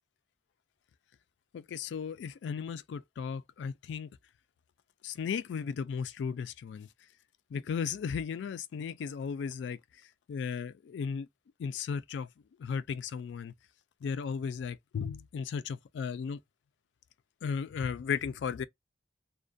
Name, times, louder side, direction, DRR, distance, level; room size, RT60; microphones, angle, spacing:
voice 1, 1.5-4.1 5.0-6.9 7.5-9.8 10.3-11.3 11.6-12.3 12.6-13.5 14.0-16.4 17.4-18.6, left 6 dB, 80° left, 0.3 m, -35 dB
2.3 x 2.1 x 2.5 m
head